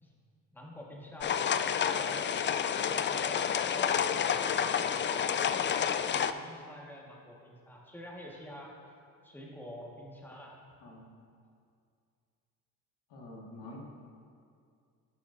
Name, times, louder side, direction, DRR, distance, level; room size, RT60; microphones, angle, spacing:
voice 1, 0.5-2.3 2.7-5.7 6.0-8.7 9.2-10.5, left 1 dB, 5° left, -3 dB, 1.8 m, -47 dB
sound 1, 1.2-6.3, left 8 dB, 30° left, 0.3 m, -29 dB
voice 2, 13.1-13.8, left 1 dB, 65° left, -3 dB, 2.1 m, -47 dB
13.5 x 6.1 x 2.8 m, 2.3 s
hypercardioid pair, 50°, 44 cm